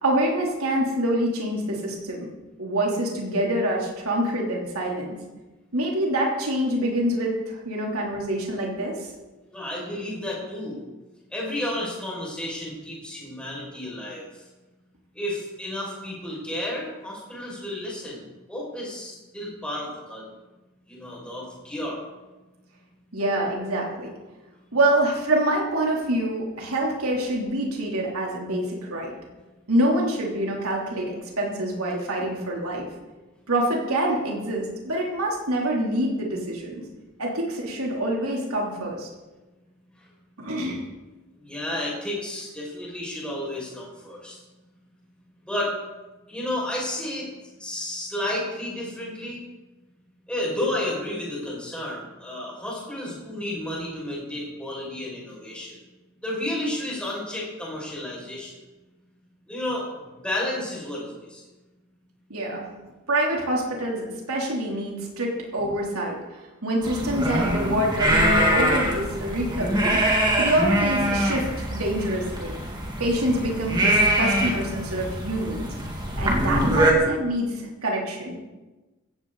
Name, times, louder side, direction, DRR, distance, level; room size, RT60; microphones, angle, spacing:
voice 1, 0.0-2.3 2.6-5.2 5.7-9.1 23.1-24.1 24.7-29.1 29.7-32.9 33.5-36.8 37.2-39.1 40.4-40.8 62.3-62.6 63.1-70.0 70.4-72.6 73.0-75.7 76.2-78.4, right 1 dB, 90° right, -1 dB, 3.3 m, -26 dB
voice 2, 9.5-10.8 11.3-14.3 15.1-20.3 20.9-22.0 41.4-44.4 45.5-45.7 46.3-47.3 47.6-49.4 50.3-55.8 56.2-58.6 59.5-59.9 60.2-61.4, left 1 dB, 5° left, -5 dB, 5.8 m, -32 dB
sound 1, 66.8-76.9, right 1 dB, 20° right, 2.4 m, -23 dB
16.0 x 15.5 x 4.1 m, 1.1 s
head